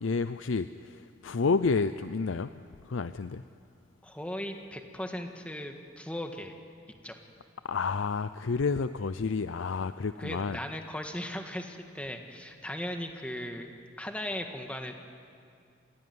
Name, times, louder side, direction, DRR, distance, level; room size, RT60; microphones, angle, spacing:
voice 1, 0.0-3.4 7.6-10.6, left 4 dB, 90° left, 12 dB, 0.6 m, -30 dB
voice 2, 4.0-6.5 7.0-7.2 10.2-13.7 14.0-14.9, left 1 dB, 5° left, 4 dB, 1.7 m, -37 dB
29.0 x 16.0 x 9.5 m, 2.4 s
head